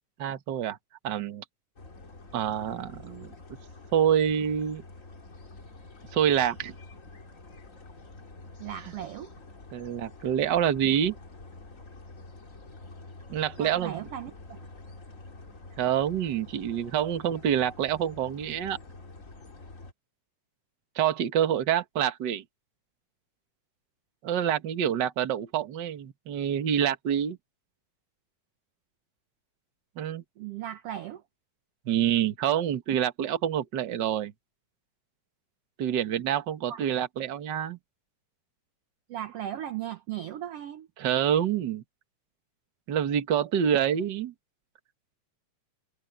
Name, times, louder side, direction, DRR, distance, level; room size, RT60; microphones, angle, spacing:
voice 1, 0.2-0.8 1.0-1.4 2.3-3.3 3.9-4.8 6.1-6.7 9.7-11.2 13.3-14.1 15.8-18.8 20.9-22.4 24.2-27.4 30.0-30.2 31.8-34.3 35.8-37.8 41.0-41.8 42.9-44.3, right 9 dB, 50° right, 1.4 m, -27 dB
sound 1, 1.8-19.9, left 3 dB, 25° left, 2.4 m, -48 dB
voice 2, 8.6-9.3 13.6-14.6 30.4-31.2 36.7-36.9 39.1-40.9, right 11 dB, 70° right, 1.5 m, -37 dB
omnidirectional pair, 3.8 m